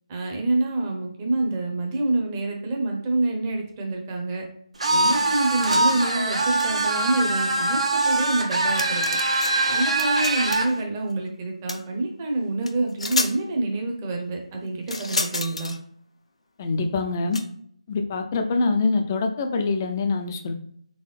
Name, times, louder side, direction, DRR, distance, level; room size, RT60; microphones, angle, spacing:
voice 1, 0.1-4.4 4.9-9.0 9.7-15.7, right 2 dB, 20° right, 1 dB, 0.9 m, -27 dB
sound 1, 4.8-10.7, right 2 dB, 70° right, 1.1 m, -23 dB
sound 2, 8.6-9.5 9.8-10.7 11.7-11.8 12.7-12.8 13.0-13.3 14.9-15.8 17.3-17.4, left 3 dB, 70° left, 0.7 m, -29 dB
voice 2, 16.6-17.4 17.9-20.5, left 3 dB, 25° left, 5 dB, 0.5 m, -24 dB
3.9 x 3.5 x 3.3 m, 0.64 s
figure-of-eight pair, 155°, 3 cm